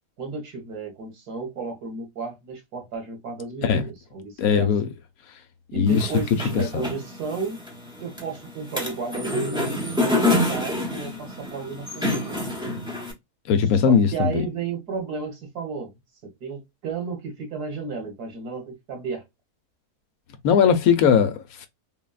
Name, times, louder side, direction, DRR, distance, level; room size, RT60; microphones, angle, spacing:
voice 1, 0.2-4.7 5.7-7.6 8.0-12.4 13.9-15.9 16.2-19.2, right 4 dB, 80° right, 1.8 m, -33 dB
voice 2, 4.4-4.9 5.7-6.1 6.5-6.9 13.5-14.4 20.4-21.7, left 7 dB, 70° left, 1.0 m, -19 dB
sound 1, 5.9-13.1, left 2 dB, 5° right, 0.4 m, -27 dB
3.7 x 2.1 x 2.3 m
omnidirectional pair, 1.7 m